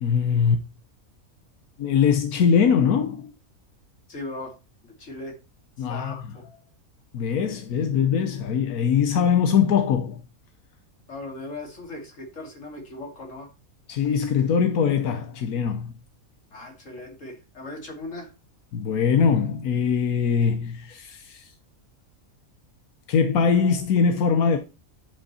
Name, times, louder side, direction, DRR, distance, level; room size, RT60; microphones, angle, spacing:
voice 1, 0.0-0.6 1.8-3.3 5.8-6.3 7.1-10.2 13.9-15.9 18.7-21.5 23.1-24.6, left 6 dB, 90° left, 1.4 m, -22 dB
voice 2, 4.1-4.6 4.8-5.4 5.8-6.4 11.1-13.5 16.5-18.3, left 2 dB, 60° left, 3.0 m, -38 dB
11.0 x 5.4 x 4.2 m
omnidirectional pair, 1.5 m